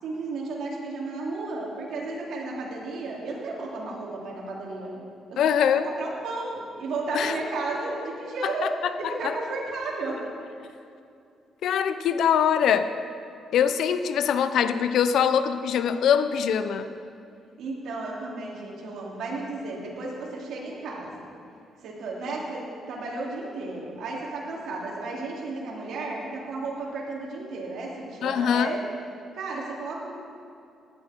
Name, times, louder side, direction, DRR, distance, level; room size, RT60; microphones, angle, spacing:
voice 1, 0.0-8.7 9.0-10.2 17.6-21.2 21.8-28.8 29.3-30.1, right 3 dB, 75° right, -3 dB, 3.4 m, -33 dB
voice 2, 5.4-5.9 7.1-7.3 8.4-9.3 11.6-12.9 13.5-16.9 28.2-28.8, left 8 dB, 75° left, 11 dB, 0.7 m, -23 dB
16.5 x 12.0 x 4.6 m, 2.5 s
cardioid pair, 90°, 0 cm